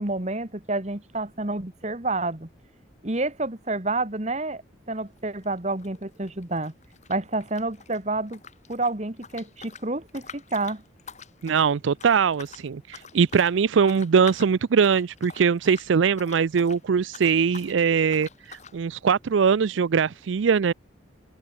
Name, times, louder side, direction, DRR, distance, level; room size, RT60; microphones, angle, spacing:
voice 1, 0.0-2.5 3.0-4.6 4.9-6.7 7.1-8.4 8.7-10.8, right 2 dB, 35° right, 1.9 m, -29 dB
sound 1, 5.0-5.2 5.4-8.0 8.3-16.8 17.1-17.8 18.1-18.8, left 6 dB, 35° left, 3.0 m, -46 dB
voice 2, 11.4-20.7, right 6 dB, 80° right, 0.4 m, -22 dB
open air
head